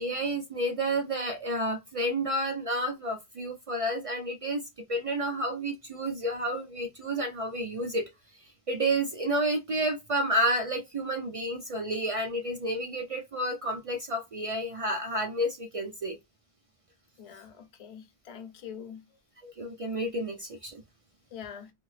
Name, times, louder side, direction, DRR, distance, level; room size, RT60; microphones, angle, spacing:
voice 1, 0.0-4.6 4.9-8.0 8.3-16.2 19.4-20.8, right 1 dB, 60° right, 0.3 m, -30 dB
voice 2, 17.2-19.0 21.3-21.7, left 8 dB, 50° left, 0.4 m, -44 dB
2.7 x 2.4 x 3.1 m
omnidirectional pair, 1.1 m